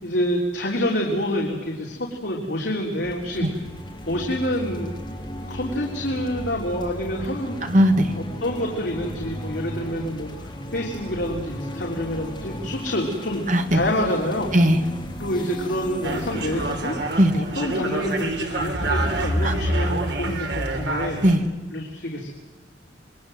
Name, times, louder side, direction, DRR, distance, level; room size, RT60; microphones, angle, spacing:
voice 1, 0.0-3.6 4.1-4.9 5.5-7.6 8.1-13.5 13.7-14.5 15.2-17.0 17.3-21.2 21.7-22.3, equal, 70° left, -1 dB, 3.4 m, -27 dB
sound 1, 3.0-18.4, equal, 25° left, 3.6 m, -36 dB
voice 2, 7.6-8.1 13.5-13.8 14.5-14.8 17.2-17.3 19.4-19.5 21.2-21.4, equal, 45° right, 6 dB, 2.0 m, -18 dB
sound 2, 16.0-21.4, right 1 dB, 70° right, 3.3 m, -26 dB
26.5 x 22.0 x 7.9 m, 1.3 s
head